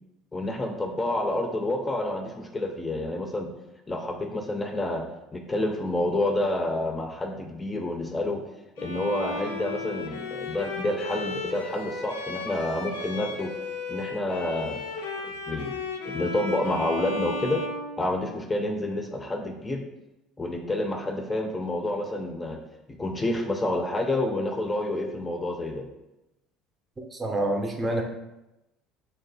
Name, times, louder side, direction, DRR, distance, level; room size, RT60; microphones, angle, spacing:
voice 1, 0.3-3.5 3.9-5.0 5.3-8.4 8.8-13.5 13.9-14.8 15.2-15.8 16.0-17.6 18.0-19.8 20.4-22.6 22.9-25.9, left 1 dB, 20° left, 2 dB, 0.4 m, -29 dB
Bowed string instrument, 8.8-18.6, left 3 dB, 90° left, 0.4 m, -35 dB
voice 2, 27.0-28.0, right 1 dB, 25° right, 2 dB, 0.6 m, -27 dB
2.8 x 2.1 x 3.8 m, 0.93 s
hypercardioid pair, 75°, 0 cm